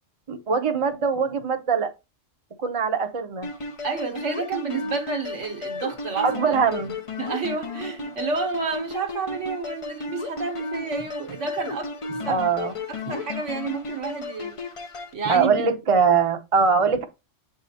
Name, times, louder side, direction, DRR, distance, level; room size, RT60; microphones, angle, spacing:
voice 1, 0.3-1.9 2.6-3.5 6.2-6.9 12.3-12.7 13.1-13.2 15.3-17.0, right 5 dB, 30° right, 0.8 m, -22 dB
sound 1, 3.4-15.1, left 3 dB, 35° left, 0.6 m, -34 dB
voice 2, 3.8-6.6 7.2-11.9 12.2-12.4 12.9-14.6 15.1-15.7, right 4 dB, 70° right, 1.6 m, -30 dB
7.5 x 4.9 x 2.7 m
omnidirectional pair, 1.3 m